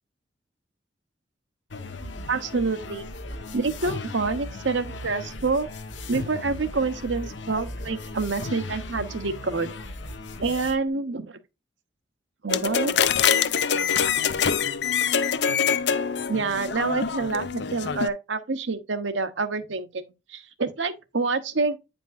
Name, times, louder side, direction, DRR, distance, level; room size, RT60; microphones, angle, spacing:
sound 1, 1.7-10.7, left 2 dB, 85° left, 1.1 m, -37 dB
voice 1, 2.3-3.1 3.5-5.7 6.1-9.7 10.4-11.4 12.4-12.9 16.3-21.8, right 4 dB, 85° right, 1.0 m, -27 dB
sound 2, 12.5-18.1, left 7 dB, 70° left, 0.5 m, -24 dB
9.3 x 5.2 x 2.5 m
head